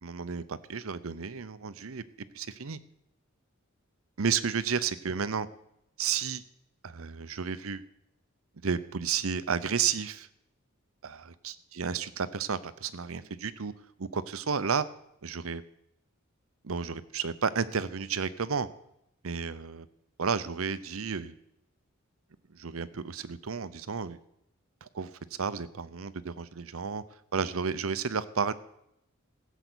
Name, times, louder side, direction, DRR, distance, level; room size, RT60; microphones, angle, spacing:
voice 1, 0.0-2.0 2.3-2.8 4.2-5.5 6.0-6.4 6.8-7.8 8.6-10.3 11.0-13.7 14.0-14.9 15.2-15.6 16.6-18.7 19.2-19.9 20.2-21.4 22.5-24.2 24.8-25.1 25.4-27.0 27.3-28.5, right 6 dB, 80° right, 15 dB, 0.7 m, -32 dB
16.0 x 8.1 x 6.3 m, 0.79 s
head